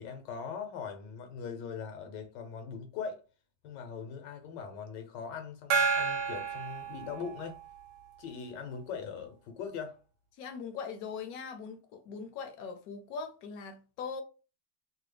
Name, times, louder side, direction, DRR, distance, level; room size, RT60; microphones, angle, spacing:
voice 1, 0.0-3.2 3.6-7.6 8.2-10.0, left 6 dB, 90° left, 1.4 m, -41 dB
Gong, 5.7-7.7, right 5 dB, 65° right, 1.1 m, -31 dB
voice 2, 10.3-14.2, left 5 dB, 70° left, 0.9 m, -41 dB
3.2 x 2.1 x 3.2 m
omnidirectional pair, 1.8 m